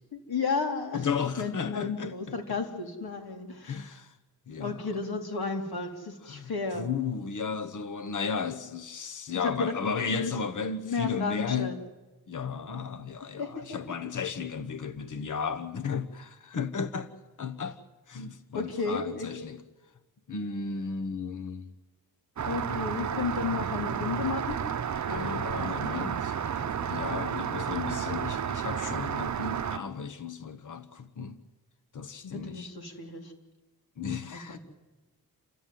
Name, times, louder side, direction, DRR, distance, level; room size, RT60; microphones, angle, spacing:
voice 1, 0.1-3.9 4.6-6.9 9.4-10.3 10.8-11.8 13.2-13.8 18.5-19.5 22.5-24.7 25.1-26.9 32.2-33.3 34.3-34.6, left 4 dB, 75° left, 3.4 m, -34 dB
voice 2, 0.9-2.1 3.6-4.1 4.5-4.8 6.3-6.5 6.8-11.7 12.3-17.1 17.4-17.8 18.1-19.6 20.3-21.7 25.0-26.3 26.9-31.4 31.9-32.7 34.0-34.6, left 6 dB, 55° left, 1.2 m, -34 dB
Rain, 22.4-29.8, right 8 dB, 50° right, 0.7 m, -32 dB
29.5 x 13.0 x 9.3 m
wide cardioid pair, 90°, 37 cm